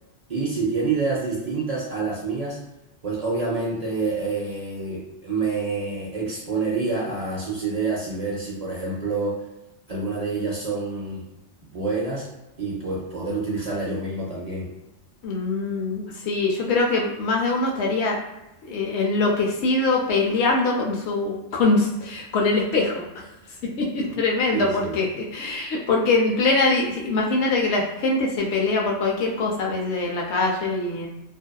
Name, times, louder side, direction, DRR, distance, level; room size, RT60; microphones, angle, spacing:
voice 1, 0.3-2.6 3.0-9.4 9.9-11.3 11.7-12.3 12.6-14.7 24.5-25.0, right 4 dB, 55° right, -4 dB, 0.4 m, -27 dB
voice 2, 15.2-18.2 18.6-23.0 23.6-31.1, left 3 dB, 70° left, -1 dB, 0.8 m, -23 dB
2.6 x 2.3 x 2.2 m, 0.94 s
omnidirectional pair, 1.2 m